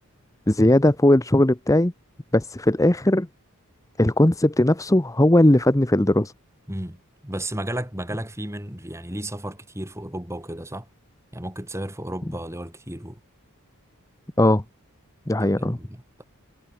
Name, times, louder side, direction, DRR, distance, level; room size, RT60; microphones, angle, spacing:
voice 1, 0.5-1.9 2.3-3.3 4.0-6.3 14.4-14.6 15.3-15.8, left 1 dB, 15° left, 0.9 m, -18 dB
voice 2, 6.7-10.9 11.3-13.2 15.4-16.2, right 1 dB, 10° right, 3.7 m, -33 dB
head